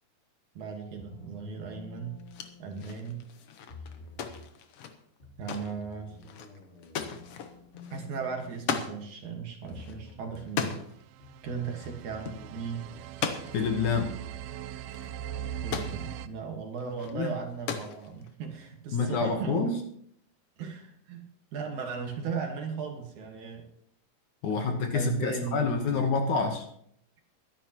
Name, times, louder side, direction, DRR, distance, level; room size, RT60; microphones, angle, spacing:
voice 1, 0.5-2.2 2.6-3.2 5.4-6.2 7.9-10.8 11.4-12.9 15.6-19.7 20.6-21.2 21.5-23.7 24.9-26.1, right 6 dB, 60° right, 3 dB, 2.7 m, -37 dB
sound 1, 1.0-3.2 3.7-4.5 5.2-9.3 9.7-10.5 11.2-13.0, left 4 dB, 20° left, 1.9 m, -50 dB
sound 2, 2.2-9.0 9.3-9.4 9.7-11.0 11.7-12.0 12.3-12.4 13.0-13.8 14.5-14.6 14.9-16.0 16.8-17.2 17.5-18.3, left 6 dB, 80° left, 1.3 m, -37 dB
sound 3, 10.9-16.3, right 9 dB, 85° right, 2.4 m, -40 dB
voice 2, 13.5-14.2 17.1-17.3 18.9-19.8 24.4-26.7, left 4 dB, 65° left, 4 dB, 2.3 m, -27 dB
22.0 x 11.0 x 3.0 m, 0.69 s
omnidirectional pair, 4.3 m